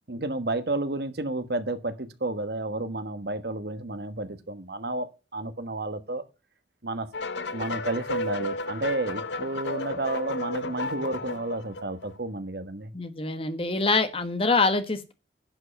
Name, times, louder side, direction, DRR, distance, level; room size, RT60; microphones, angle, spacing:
voice 1, 0.1-5.1 5.3-6.2 6.8-7.1 7.5-12.9, right 2 dB, 60° right, 1.4 m, -31 dB
sound 1, 7.1-12.2, left 2 dB, 80° left, 0.8 m, -33 dB
voice 2, 12.9-15.1, left 3 dB, 30° left, 1.2 m, -25 dB
11.0 x 5.6 x 6.8 m
head